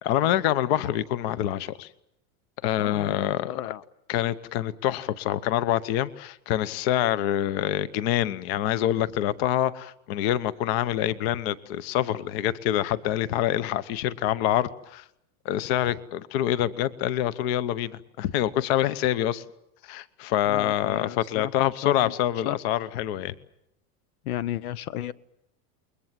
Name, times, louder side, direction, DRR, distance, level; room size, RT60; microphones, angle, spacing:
voice 1, 0.0-1.9 2.6-3.6 4.1-15.0 15.4-19.4 19.8-23.3, left 12 dB, 45° left, 16 dB, 1.0 m, -26 dB
voice 2, 2.8-3.8 20.5-22.1 22.4-22.6 24.2-25.1, left 12 dB, 75° left, 18 dB, 1.1 m, -34 dB
29.0 x 22.0 x 7.5 m, 0.79 s
supercardioid pair, 170°, 44 cm